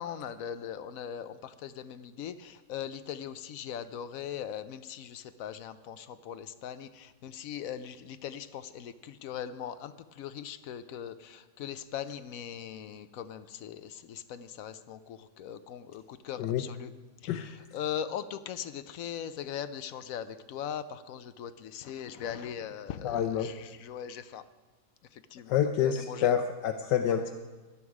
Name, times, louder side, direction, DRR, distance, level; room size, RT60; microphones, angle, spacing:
voice 1, 0.0-9.9 10.2-16.9 17.3-24.4 25.3-25.6 25.8-26.3, left 9 dB, 65° left, 12 dB, 0.9 m, -40 dB
voice 2, 23.0-23.5 25.5-27.3, left 9 dB, 85° left, 5 dB, 1.3 m, -27 dB
17.5 x 11.0 x 4.8 m, 1.2 s
omnidirectional pair, 1.8 m